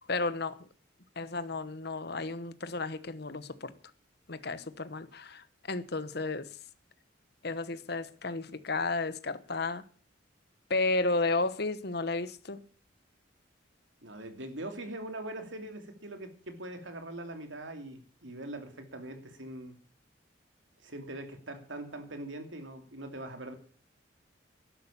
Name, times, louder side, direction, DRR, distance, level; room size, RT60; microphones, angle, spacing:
voice 1, 0.1-0.6 1.2-3.7 4.3-6.5 7.4-9.8 10.7-12.6, left 3 dB, 55° left, 1.1 m, -33 dB
voice 2, 14.0-19.8 20.8-23.5, right 1 dB, 80° right, 2.9 m, -42 dB
12.5 x 11.5 x 7.1 m
head